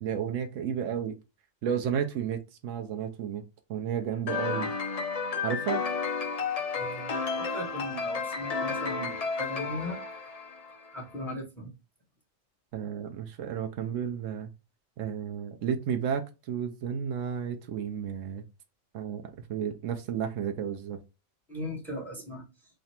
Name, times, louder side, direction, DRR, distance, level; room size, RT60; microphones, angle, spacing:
voice 1, 0.0-1.2 1.6-3.4 3.7-4.7 5.4-5.9 12.7-14.5 15.0-18.4 18.9-21.0, right 8 dB, 80° right, 1.0 m, -32 dB
sound 1, 4.3-10.9, left 5 dB, 50° left, 0.4 m, -32 dB
voice 2, 6.7-10.0 10.9-11.7 21.5-22.4, left 1 dB, ahead, 1.2 m, -38 dB
3.3 x 2.4 x 4.1 m
omnidirectional pair, 1.3 m